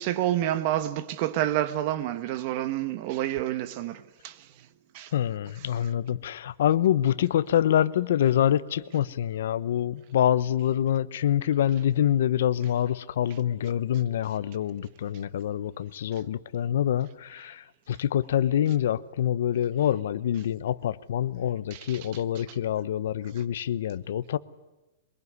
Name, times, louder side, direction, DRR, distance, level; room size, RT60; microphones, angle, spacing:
voice 1, 0.0-4.3 4.9-5.1 21.7-22.0, right 13 dB, 40° right, 1.3 m, -28 dB
voice 2, 5.1-24.4, left 10 dB, 65° left, 1.0 m, -26 dB
23.5 x 22.0 x 9.7 m
supercardioid pair, 165°, 0 cm